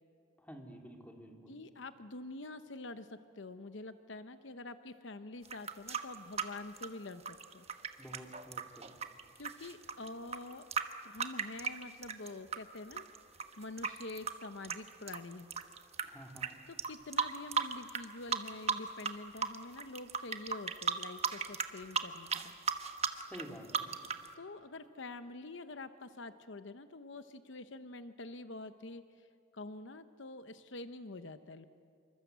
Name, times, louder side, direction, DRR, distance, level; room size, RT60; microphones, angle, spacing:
voice 1, 0.4-1.6 8.0-8.9 16.0-16.6 23.2-23.9, equal, 10° left, 2 dB, 2.9 m, -50 dB
voice 2, 1.5-7.6 9.4-10.7 11.0-13.1 13.6-15.5 16.7-22.5 24.4-29.3 29.5-31.7, left 2 dB, 70° left, 10 dB, 0.9 m, -46 dB
sound 1, 5.4-12.6 12.9-16.0 16.4-16.5 16.8-18.0 18.3-19.1 19.4-24.3, right 6 dB, 30° right, 1.2 m, -35 dB
28.0 x 24.5 x 8.1 m, 2.6 s
head